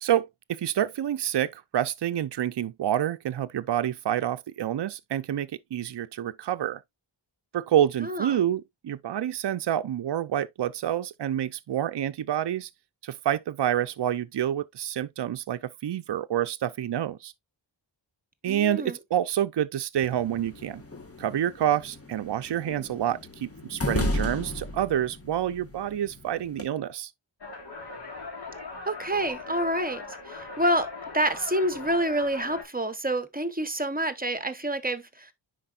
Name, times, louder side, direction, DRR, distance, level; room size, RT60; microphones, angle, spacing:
voice 1, 0.0-6.8 7.5-12.7 13.0-17.3 18.4-20.8 21.2-27.1, right 11 dB, 65° right, 0.6 m, -28 dB
voice 2, 8.0-8.4 18.4-19.0 28.9-35.3, right 1 dB, 20° right, 1.0 m, -28 dB
sound 1, 20.0-26.7, left 2 dB, 30° left, 1.4 m, -35 dB
sound 2, 27.4-32.7, left 3 dB, 55° left, 3.5 m, -40 dB
9.9 x 4.5 x 2.4 m
wide cardioid pair, 95°, 45 cm